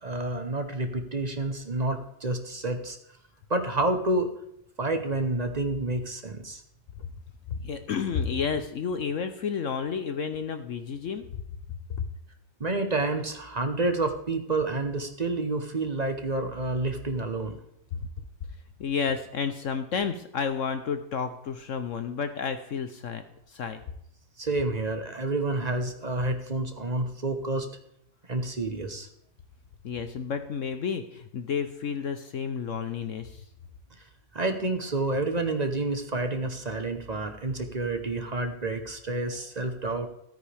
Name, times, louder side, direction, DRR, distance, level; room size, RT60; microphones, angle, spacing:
voice 1, 0.0-3.0 3.5-4.3 4.8-6.6 12.6-17.6 24.4-27.7 28.3-29.1 34.3-40.1, right 2 dB, 30° right, 6 dB, 0.8 m, -29 dB
voice 2, 7.5-11.2 17.9-18.0 18.8-23.8 29.8-33.4, left 6 dB, 60° left, 9 dB, 0.9 m, -31 dB
13.0 x 9.3 x 3.4 m, 0.75 s
omnidirectional pair, 1.8 m